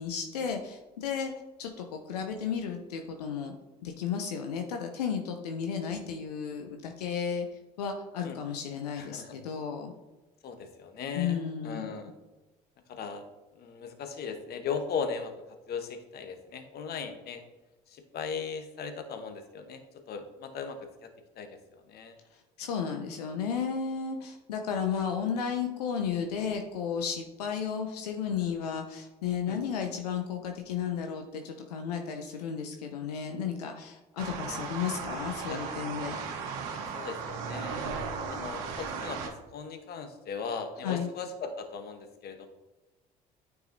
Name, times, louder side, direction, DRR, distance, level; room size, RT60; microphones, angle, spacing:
voice 1, 0.0-1.3 1.6-3.5 3.8-7.5 7.8-9.9 11.1-11.9 22.6-36.2 40.8-41.1, left 7 dB, 90° left, 4 dB, 0.6 m, -33 dB
voice 2, 9.0-9.3 10.4-12.1 12.9-13.2 13.6-15.3 15.7-17.4 17.9-21.1 21.4-21.5 21.9-22.1 29.5-29.6 34.5-34.6 35.4-35.7 36.9-37.8 38.3-42.5, left 5 dB, 55° left, 7 dB, 1.0 m, -38 dB
sound 1, 34.2-39.3, right 5 dB, 75° right, 1.0 m, -36 dB
9.1 x 4.7 x 2.7 m, 1.1 s
hypercardioid pair, 65°, 20 cm